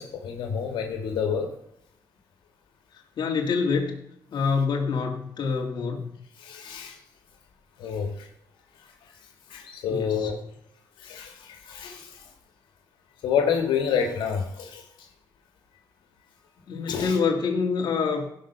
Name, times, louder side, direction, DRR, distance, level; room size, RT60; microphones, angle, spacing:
voice 1, 0.0-1.5 6.4-7.0 7.8-8.3 9.5-10.4 11.0-12.2 13.2-14.8 16.9-17.2, left 7 dB, 90° left, 3 dB, 1.8 m, -28 dB
voice 2, 3.2-4.0 4.3-6.1 9.9-10.3 16.7-18.3, left 5 dB, 65° left, 2 dB, 2.0 m, -26 dB
16.5 x 5.6 x 5.6 m, 0.75 s
cardioid pair, 95°, 8 cm